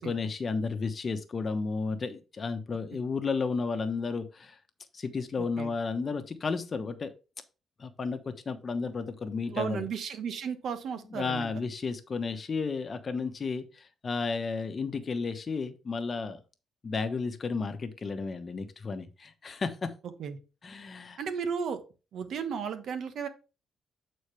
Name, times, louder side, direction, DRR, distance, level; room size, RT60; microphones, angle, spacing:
voice 1, 0.0-4.6 4.9-7.1 7.8-9.8 11.1-16.4 16.8-19.9 20.6-21.2, left 4 dB, 40° left, 9 dB, 1.0 m, -33 dB
voice 2, 5.4-5.7 9.5-11.5 20.2-20.4 21.2-21.8 22.1-23.3, right 6 dB, 65° right, 9 dB, 1.0 m, -34 dB
8.2 x 4.3 x 3.2 m, 0.32 s
cardioid pair, 90°, 0 cm